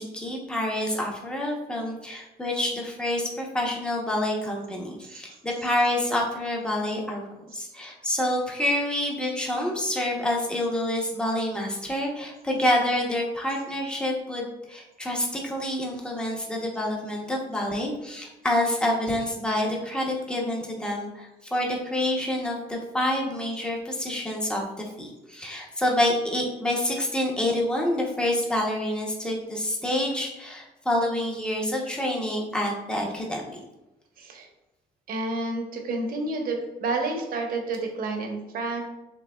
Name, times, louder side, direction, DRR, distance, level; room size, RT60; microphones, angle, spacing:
voice 1, 0.0-7.2 7.5-33.6, left 1 dB, 5° left, -1 dB, 0.9 m, -27 dB
voice 2, 5.0-5.4 34.2-34.5 35.1-38.8, right 2 dB, 60° right, 2 dB, 1.0 m, -30 dB
6.0 x 3.3 x 2.3 m, 0.96 s
cardioid pair, 110°, 17 cm